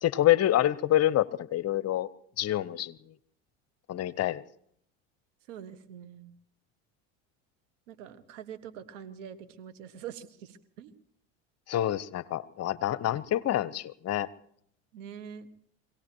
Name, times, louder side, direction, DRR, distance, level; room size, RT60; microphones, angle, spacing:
voice 1, 0.0-2.1 2.4-3.0 3.9-4.4 11.7-14.3, left 13 dB, 40° left, 18 dB, 0.9 m, -27 dB
voice 2, 5.5-6.3 7.9-10.9 14.9-15.5, right 8 dB, 80° right, 9 dB, 1.6 m, -44 dB
25.5 x 18.0 x 3.0 m, 0.66 s
hypercardioid pair, 85°, 37 cm